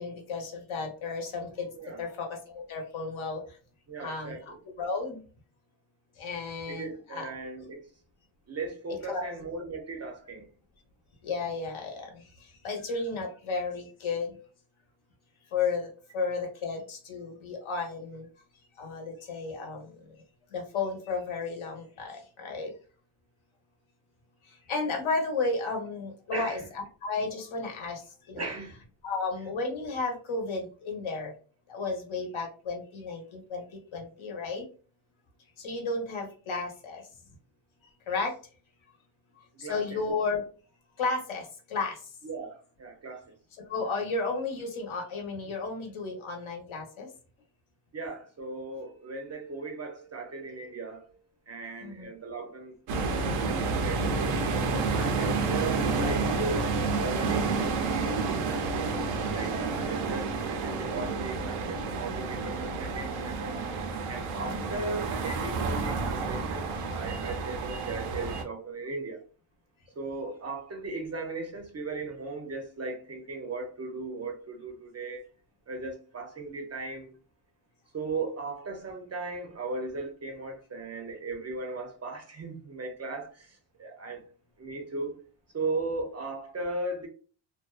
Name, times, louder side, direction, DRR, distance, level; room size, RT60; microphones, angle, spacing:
voice 1, 0.0-3.6 4.0-5.2 6.2-7.3 9.1-9.3 11.2-14.4 15.5-18.3 18.8-20.2 20.5-22.7 24.4-28.4 29.0-31.3 31.7-34.7 35.6-37.1 38.1-38.4 39.4-40.4 41.0-42.1 43.7-47.1 51.8-52.1 64.3-64.7, left 4 dB, 70° left, 0.9 m, -33 dB
voice 2, 3.9-4.6 6.7-7.9 8.5-10.5 26.3-26.6 28.4-28.8 39.5-40.0 42.2-43.3 47.9-54.0 54.6-56.7 57.0-63.5 64.1-69.2 70.0-75.3 75.7-77.1 77.9-84.2 84.6-85.2 85.5-87.1, right 3 dB, 30° right, 0.5 m, -37 dB
sound 1, 52.9-68.4, right 4 dB, 85° right, 0.6 m, -30 dB
2.4 x 2.2 x 2.3 m
cardioid pair, 110°, 50 cm